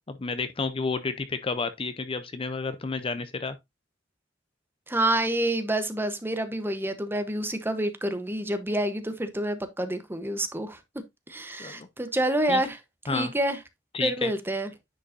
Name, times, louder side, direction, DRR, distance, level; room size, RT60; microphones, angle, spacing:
voice 1, 0.0-3.6 11.6-11.9 12.5-12.6 13.1-13.3 13.9-14.3, left 4 dB, 30° left, 0.6 m, -31 dB
voice 2, 4.9-10.8 11.3-12.8 13.0-13.6 14.0-14.7, right 1 dB, 10° right, 0.9 m, -28 dB
9.8 x 5.3 x 2.6 m
head